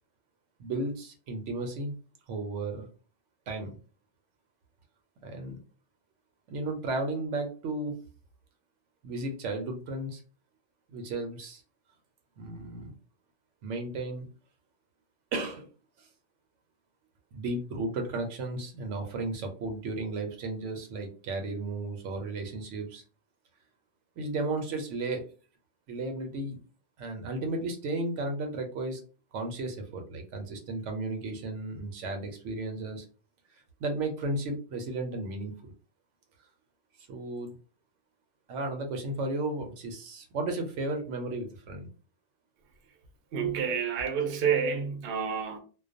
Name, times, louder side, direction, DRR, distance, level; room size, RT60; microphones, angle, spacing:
voice 1, 0.6-1.9 2.3-2.9 3.5-3.7 5.2-5.6 6.5-8.0 9.0-10.2 10.9-11.6 12.4-13.0 13.6-14.3 15.3-15.7 16.0-16.1 17.3-23.0 24.2-25.3 25.9-26.6 27.0-29.0 29.3-33.1 33.5-35.7 37.1-37.5 38.5-41.9, right 2 dB, 85° right, 0.9 m, -34 dB
voice 2, 43.3-45.6, right 7 dB, 60° right, 0.7 m, -29 dB
2.2 x 2.2 x 2.5 m
omnidirectional pair, 1.2 m